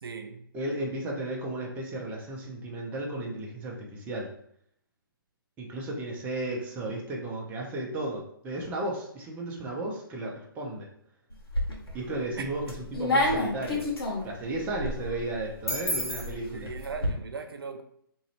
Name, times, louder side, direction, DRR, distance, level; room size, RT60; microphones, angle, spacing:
voice 1, 0.0-0.5 12.4-12.5 16.5-17.8, right 5 dB, 80° right, 0.5 m, -38 dB
voice 2, 0.5-4.3 5.6-10.9 11.9-13.9 14.2-16.7, right 2 dB, 15° right, 0.7 m, -34 dB
sound 1, 11.3-12.0 12.4-17.1, left 1 dB, 90° left, 1.3 m, -29 dB
3.1 x 2.6 x 4.2 m
hypercardioid pair, 140°, 12 cm